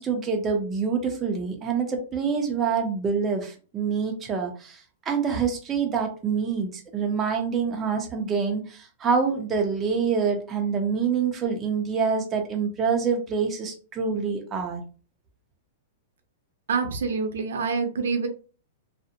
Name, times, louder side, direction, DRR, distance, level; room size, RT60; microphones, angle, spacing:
voice 1, 0.0-14.8, right 5 dB, 15° right, 2 dB, 0.5 m, -26 dB
voice 2, 16.7-18.3, right 5 dB, 85° right, 5 dB, 0.6 m, -26 dB
2.5 x 2.1 x 2.7 m, 0.37 s
supercardioid pair, 155°, 0 cm